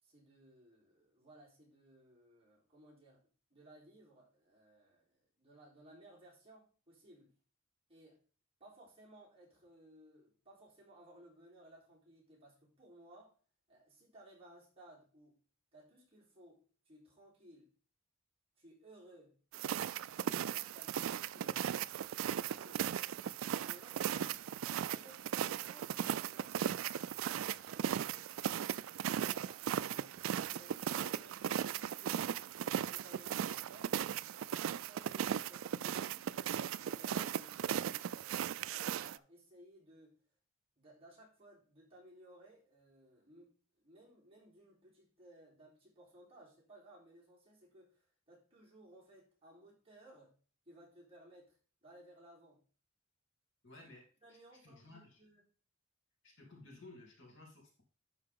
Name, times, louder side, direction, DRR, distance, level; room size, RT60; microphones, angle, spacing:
voice 1, 0.0-7.3 7.9-8.2 8.6-13.3 13.7-15.4 15.7-17.7 18.6-19.4 20.4-21.6 23.6-24.3 24.7-26.6 27.2-28.3 29.0-33.9 34.4-36.3 36.8-40.2 40.8-48.0 48.3-50.3 50.7-52.6 54.2-55.4, right 1 dB, 30° right, -5 dB, 4.0 m, -60 dB
sound 1, 19.5-39.2, right 9 dB, 75° right, 0.3 m, -37 dB
voice 2, 24.0-24.4 25.7-25.9 53.6-54.4 54.6-55.2 56.2-57.8, left 2 dB, 65° left, -2 dB, 3.3 m, -56 dB
11.5 x 4.8 x 3.7 m, 0.39 s
head